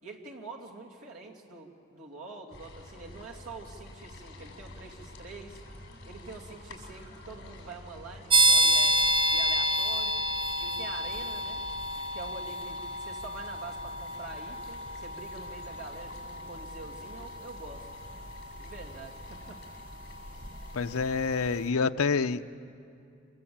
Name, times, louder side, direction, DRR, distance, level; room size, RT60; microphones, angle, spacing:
voice 1, 0.0-5.6 6.0-9.0 9.3-10.2 10.6-11.6 12.1-17.9 18.6-19.6, right 3 dB, 85° right, -1 dB, 2.8 m, -45 dB
sound 1, 2.5-21.6, left 1 dB, 55° left, 7.3 m, -48 dB
sound 2, 8.3-20.8, right 1 dB, 25° right, 1.0 m, -29 dB
voice 2, 20.7-22.6, left 5 dB, 80° left, 11 dB, 0.7 m, -28 dB
26.0 x 20.5 x 8.8 m, 2.5 s
head